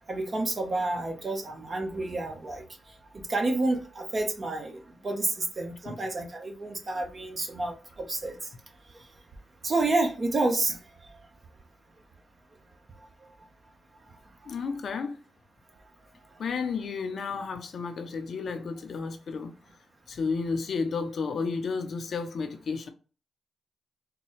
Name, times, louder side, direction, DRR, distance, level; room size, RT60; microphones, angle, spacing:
voice 1, 0.1-8.5 9.6-10.8 11.1-11.2 16.3-16.4, right 2 dB, 50° right, 1.1 m, -30 dB
voice 2, 14.5-15.2 16.4-19.5 20.1-22.9, left 5 dB, 65° left, 0.6 m, -32 dB
4.1 x 2.2 x 3.1 m
supercardioid pair, 40°, 0 cm